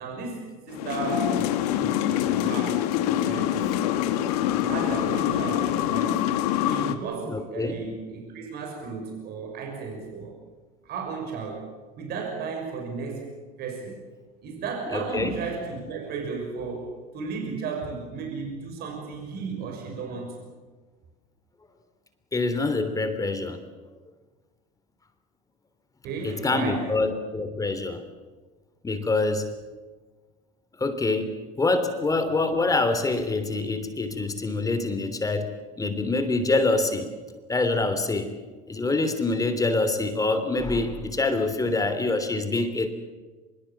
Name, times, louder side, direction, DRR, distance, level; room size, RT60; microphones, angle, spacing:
voice 1, 0.0-3.6 4.6-10.4 10.8-13.3 13.6-14.0 14.4-20.5 26.0-26.9, right 4 dB, 55° right, 2 dB, 6.2 m, -34 dB
sound 1, 0.7-7.0, left 11 dB, 80° left, 1.9 m, -25 dB
voice 2, 7.3-7.8 14.9-15.3 22.3-23.6 26.2-28.0 28.8-29.5 30.8-37.1 37.5-38.3 38.7-42.9, left 3 dB, 15° left, 9 dB, 3.2 m, -25 dB
24.5 x 22.0 x 7.4 m, 1.3 s
supercardioid pair, 100°, 20 cm